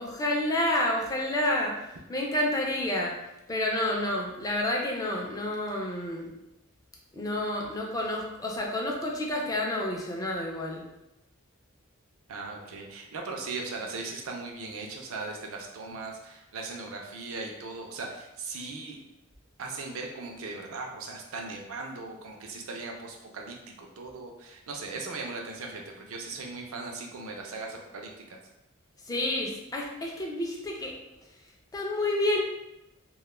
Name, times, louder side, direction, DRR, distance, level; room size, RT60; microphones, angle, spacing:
voice 1, 0.0-1.7 2.1-3.1 3.5-6.3 7.1-10.8 29.1-30.9 31.7-32.4, left 1 dB, 15° left, -1 dB, 0.4 m, -29 dB
voice 2, 12.3-19.0 19.6-28.4, right 3 dB, 70° right, 1 dB, 0.5 m, -38 dB
2.3 x 2.1 x 3.1 m, 0.92 s
head